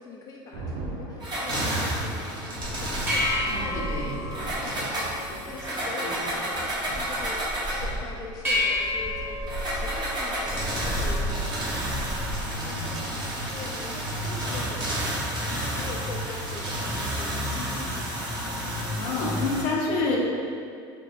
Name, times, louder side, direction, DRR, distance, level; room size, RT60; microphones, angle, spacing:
voice 1, 0.0-2.2 2.8-13.0 13.2-18.2, left 3 dB, 30° left, -1 dB, 0.4 m, -42 dB
Thunder, 0.5-14.5, right 2 dB, 65° right, 0.7 m, -42 dB
sound 1, 1.2-3.6 4.3-7.9 9.5-19.6, right 1 dB, 35° right, 1.2 m, -30 dB
sound 2, 2.6-12.6, left 1 dB, 15° right, 1.2 m, -31 dB
voice 2, 3.5-4.7 6.0-6.2 12.4-13.0 19.0-20.2, left 3 dB, 65° left, -2 dB, 0.7 m, -30 dB
3.7 x 2.2 x 3.4 m, 2.3 s
hypercardioid pair, 90°, 13 cm